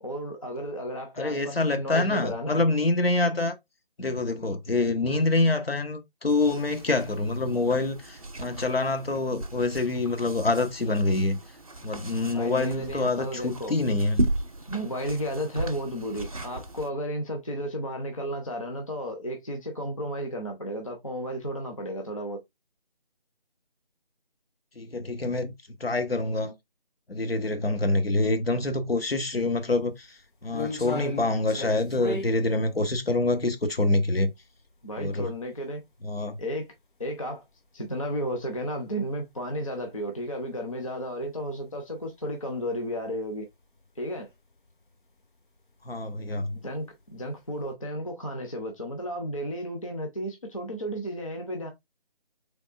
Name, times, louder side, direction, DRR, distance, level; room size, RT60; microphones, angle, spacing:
voice 1, 0.0-2.6 5.0-5.2 12.3-13.7 14.7-22.4 34.8-35.8 36.4-36.7 37.0-37.4 37.7-43.5 44.0-44.3 46.6-46.9 47.1-51.7, equal, 35° left, 0.5 m, -33 dB
voice 2, 1.2-3.5 4.0-11.4 11.8-14.2 24.8-25.5 25.8-26.5 27.1-34.3 35.0-35.3 36.0-36.4 45.8-46.6, left 2 dB, 80° left, 0.9 m, -26 dB
sound 1, 6.3-16.9, right 1 dB, 40° right, 0.5 m, -36 dB
sound 2, 29.2-29.3 29.7-34.8 35.2-35.3 36.0-36.1 36.4-36.5 37.5-37.6 37.9-38.1 38.6-38.7 39.0-39.1 41.3-41.4 42.6-43.0 43.4-43.8 44.1-44.3 44.6-44.7 45.8-46.0 46.6-47.3 47.7-47.8, left 2 dB, 60° left, 0.9 m, -36 dB
3.4 x 3.2 x 2.4 m
figure-of-eight pair, 160°, 29 cm